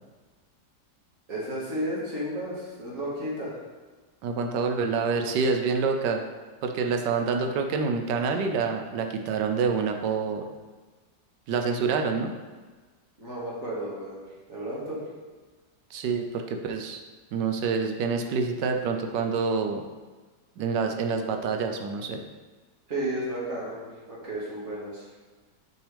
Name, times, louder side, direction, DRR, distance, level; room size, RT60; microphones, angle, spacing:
voice 1, 1.3-3.6 13.2-14.2 14.5-15.0 22.9-25.1, right 1 dB, 50° right, -6 dB, 2.2 m, -33 dB
voice 2, 4.2-6.2 6.6-10.4 11.5-12.3 15.9-17.0 17.3-19.8 20.6-22.2, right 5 dB, 85° right, 4 dB, 1.3 m, -27 dB
6.3 x 5.9 x 3.3 m, 1.3 s
omnidirectional pair, 1.8 m